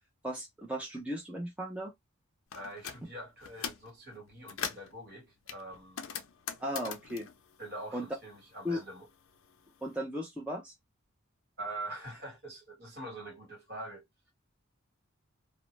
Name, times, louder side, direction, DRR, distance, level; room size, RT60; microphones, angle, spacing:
voice 1, 0.2-1.9 6.6-7.3 7.9-8.1 8.6-8.8 9.8-10.7, equal, 5° right, 0.5 m, -36 dB
sound 1, 2.5-3.0 3.4-3.9 4.3-4.9 5.5-8.4 8.7-9.8, left 7 dB, 75° left, 0.5 m, -41 dB
voice 2, 2.5-6.1 6.9-7.0 7.6-9.1 11.6-14.1, right 1 dB, 50° right, 1.4 m, -44 dB
2.5 x 2.1 x 3.1 m
head